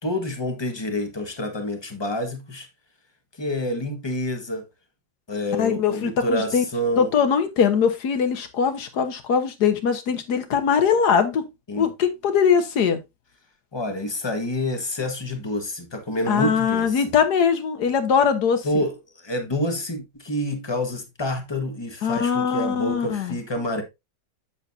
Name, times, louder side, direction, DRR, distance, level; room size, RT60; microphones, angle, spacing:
voice 1, 0.0-2.7 3.4-4.6 5.3-7.1 11.7-11.9 13.7-17.0 18.6-23.8, left 1 dB, 15° left, 1.0 m, -28 dB
voice 2, 5.6-6.6 7.0-11.4 11.8-13.0 16.3-18.8 22.0-23.4, left 7 dB, 60° left, 1.5 m, -21 dB
8.4 x 7.1 x 2.6 m
omnidirectional pair, 2.1 m